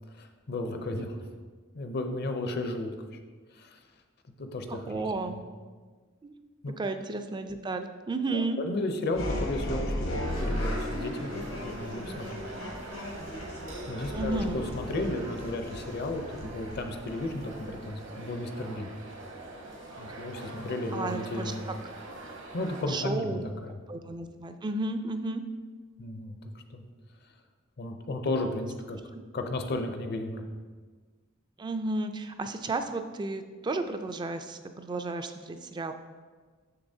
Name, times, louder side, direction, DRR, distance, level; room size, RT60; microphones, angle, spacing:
voice 1, 0.2-1.2 1.7-2.9 3.5-3.8 4.4-5.0 5.3-5.4 6.6-6.7 8.3-12.4 13.9-18.9 20.0-21.6 22.5-23.8 26.0-26.8 27.8-29.0 29.3-30.4, left 2 dB, 55° left, 6 dB, 0.6 m, -34 dB
voice 2, 4.7-5.4 6.2-6.3 6.8-8.6 14.1-14.6 20.9-21.7 22.9-23.4 23.9-25.4 31.6-35.9, right 2 dB, 20° right, 8 dB, 0.3 m, -33 dB
sound 1, 9.1-17.8, left 1 dB, 85° left, 1.3 m, -35 dB
sound 2, 10.3-22.8, right 2 dB, 65° right, 1.0 m, -44 dB
6.8 x 6.6 x 2.7 m, 1.5 s
head